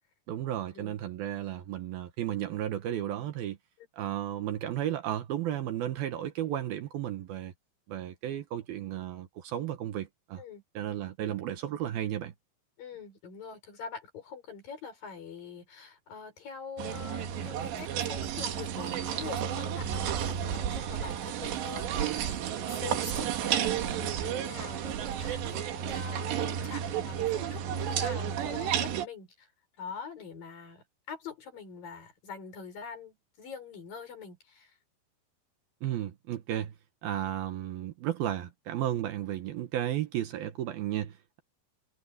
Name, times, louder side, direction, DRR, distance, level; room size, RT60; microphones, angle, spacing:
voice 1, 0.3-3.6 3.9-7.5 7.9-10.4 10.7-12.3 35.8-36.7 37.0-41.4, right 11 dB, 70° right, 2.7 m, -33 dB
voice 2, 12.8-29.5 29.8-34.8, left 6 dB, 55° left, 7.0 m, -44 dB
sound 1, 16.8-29.1, right 9 dB, 85° right, 4.1 m, -32 dB
omnidirectional pair, 4.9 m